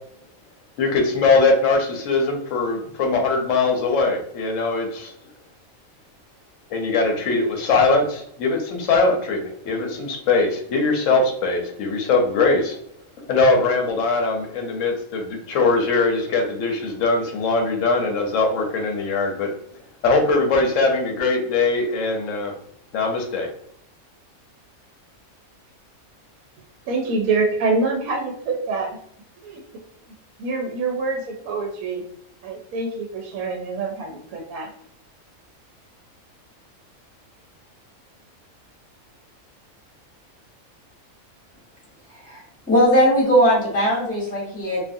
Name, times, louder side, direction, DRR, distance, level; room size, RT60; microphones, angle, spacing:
voice 1, 0.8-5.1 6.7-12.8 13.3-19.5 20.0-22.5 22.9-23.5, left 3 dB, 70° left, 3 dB, 0.9 m, -21 dB
voice 2, 26.9-28.9 29.4-29.6 30.4-32.0 32.4-34.7, right 3 dB, 85° right, 2 dB, 1.0 m, -25 dB
voice 3, 42.7-44.8, equal, 5° left, -6 dB, 1.0 m, -18 dB
2.4 x 2.3 x 2.6 m, 0.67 s
omnidirectional pair, 1.5 m